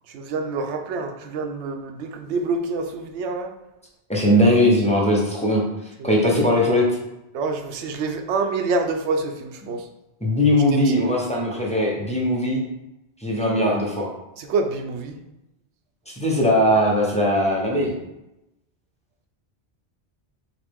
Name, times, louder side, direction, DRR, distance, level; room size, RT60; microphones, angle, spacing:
voice 1, 0.1-3.5 6.0-6.1 6.4-6.5 7.3-9.9 10.9-11.0 13.5-13.7 14.4-15.2, right 3 dB, 85° right, 4 dB, 0.9 m, -27 dB
voice 2, 4.1-5.6 6.0-6.9 10.2-12.6 13.2-14.1 16.1-18.0, left 1 dB, 10° left, -4 dB, 0.6 m, -19 dB
4.1 x 2.5 x 3.4 m, 0.93 s
omnidirectional pair, 1.1 m